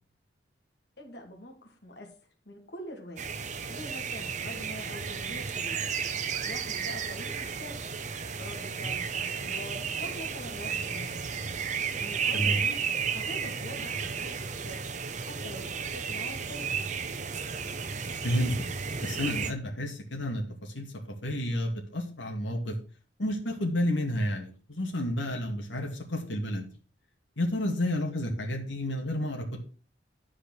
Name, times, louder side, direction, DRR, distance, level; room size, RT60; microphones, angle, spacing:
voice 1, 1.0-2.1 2.5-3.2 3.7-5.8 6.5-7.8 8.4-11.2 12.0-12.8 13.1-14.8 15.2-16.8, left 1 dB, 60° left, 0 dB, 2.2 m, -44 dB
sound 1, 3.2-19.5, right 6 dB, 40° right, 0.8 m, -33 dB
voice 2, 18.2-18.6 19.0-20.9 21.2-22.7 23.2-26.7 27.4-29.6, left 1 dB, 80° left, 1 dB, 2.4 m, -30 dB
11.5 x 5.0 x 6.3 m, 0.37 s
head